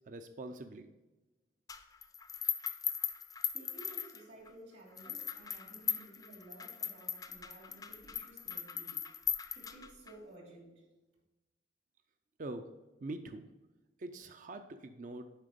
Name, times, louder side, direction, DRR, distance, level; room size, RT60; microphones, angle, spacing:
voice 1, 0.1-0.9 12.4-12.7 13.0-13.5 14.0-15.2, right 2 dB, 45° right, 8 dB, 0.5 m, -43 dB
sound 1, 1.7-4.5 5.0-10.1, left 7 dB, 20° left, 0.4 m, -38 dB
voice 2, 3.5-9.0 9.5-10.8, right 2 dB, 70° right, -2 dB, 3.0 m, -54 dB
7.4 x 5.0 x 5.2 m, 1.1 s
head